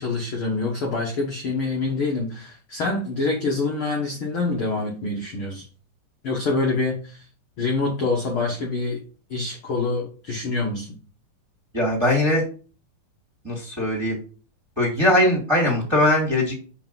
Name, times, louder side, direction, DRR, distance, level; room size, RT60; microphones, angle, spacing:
voice 1, 0.0-5.6 6.2-7.2 7.6-9.0 9.3-10.9, left 3 dB, 55° left, -1 dB, 1.5 m, -26 dB
voice 2, 11.7-12.4 13.4-14.2 14.8-16.6, left 1 dB, 10° right, -3 dB, 2.0 m, -20 dB
5.7 x 5.5 x 5.3 m, 0.38 s
omnidirectional pair, 4.1 m